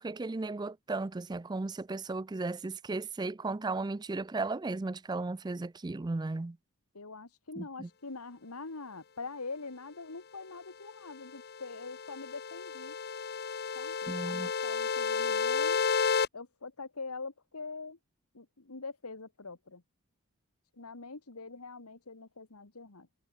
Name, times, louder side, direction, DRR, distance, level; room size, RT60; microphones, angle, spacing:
voice 1, 0.0-6.6 7.6-7.9 14.1-14.5, right 3 dB, 20° right, 0.4 m, -35 dB
voice 2, 6.9-13.0 13.8-14.0 14.2-15.9 16.3-18.0 18.3-19.8 20.7-23.1, left 3 dB, 85° left, 1.7 m, -44 dB
sound 1, 11.3-16.3, left 5 dB, 45° left, 0.7 m, -32 dB
head